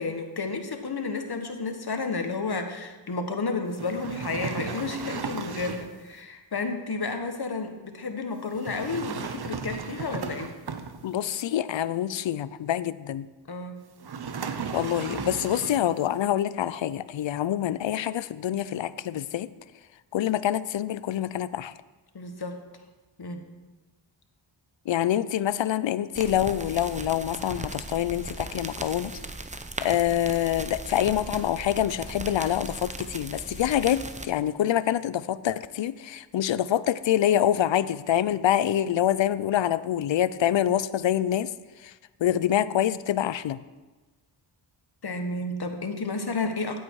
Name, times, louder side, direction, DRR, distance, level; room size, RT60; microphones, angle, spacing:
voice 1, 0.0-10.5 13.5-13.8 22.1-22.6 23.2-23.4 45.0-46.8, left 3 dB, 55° left, 6 dB, 1.5 m, -31 dB
sound 1, 3.7-6.0 8.5-11.3 14.0-16.0, right 6 dB, 55° right, 1.0 m, -35 dB
voice 2, 11.0-13.2 14.7-19.5 20.1-21.7 24.9-29.1 29.8-41.5 41.8-41.9 42.2-43.6, left 11 dB, 70° left, 17 dB, 0.6 m, -26 dB
sound 2, 26.1-34.3, right 2 dB, 15° right, 0.8 m, -38 dB
15.5 x 8.2 x 4.8 m, 1.2 s
cardioid pair, 55°, 46 cm